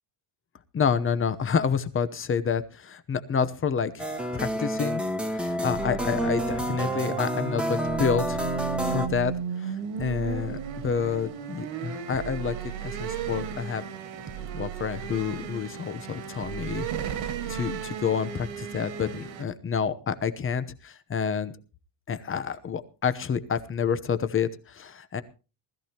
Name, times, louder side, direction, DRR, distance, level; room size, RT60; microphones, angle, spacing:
voice 1, 0.7-5.0 5.3-9.3 9.6-12.5 12.8-13.8 14.5-16.9 17.5-21.5 22.1-25.2, left 6 dB, 25° left, 13 dB, 0.9 m, -29 dB
sound 1, 4.0-9.1, equal, ahead, 1.3 m, -29 dB
sound 2, 5.7-7.0 7.8-9.5 10.0-11.4 12.1-13.7 14.3-15.7 16.4-18.0, right 13 dB, 35° right, 0.8 m, -40 dB
sound 3, 6.0-19.4, right 6 dB, 70° right, 2.3 m, -35 dB
19.5 x 14.0 x 2.9 m, 0.34 s
cardioid pair, 145°, 48 cm